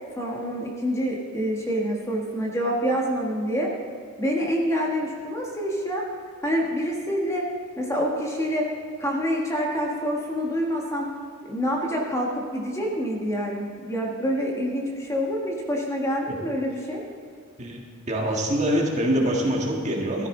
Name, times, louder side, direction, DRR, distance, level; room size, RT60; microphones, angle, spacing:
voice 1, 0.2-3.7 4.2-6.0 6.4-7.5 7.8-8.7 9.0-11.1 11.5-17.0, equal, 15° left, -1 dB, 1.5 m, -27 dB
voice 2, 17.6-20.3, equal, 35° right, -1 dB, 1.9 m, -25 dB
14.0 x 13.5 x 3.9 m, 2.2 s
head